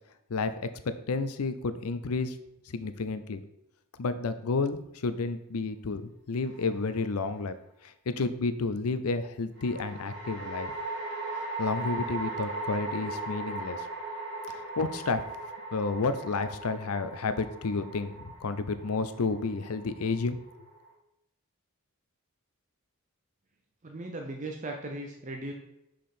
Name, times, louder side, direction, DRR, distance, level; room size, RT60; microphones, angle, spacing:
voice 1, 0.9-2.4 2.7-3.4 4.0-7.5 7.8-10.7 11.6-13.9 14.5-15.2 15.7-20.4, left 3 dB, 85° left, 11 dB, 0.6 m, -31 dB
sound 1, 6.4-7.1 9.6-20.9, right 2 dB, 55° right, 2.1 m, -38 dB
voice 2, 23.8-25.5, right 2 dB, 35° right, 2 dB, 0.6 m, -37 dB
5.7 x 5.2 x 4.3 m, 0.82 s
head